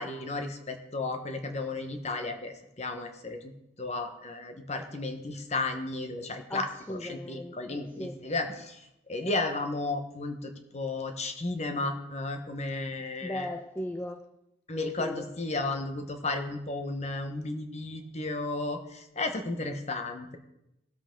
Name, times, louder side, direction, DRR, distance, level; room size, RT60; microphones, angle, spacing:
voice 1, 0.0-3.5 3.8-13.5 14.7-20.4, left 2 dB, 35° left, 1.2 m, -34 dB
voice 2, 6.5-8.2 13.2-14.3 15.0-15.3, left 1 dB, 10° left, 0.4 m, -37 dB
19.0 x 7.9 x 3.8 m
head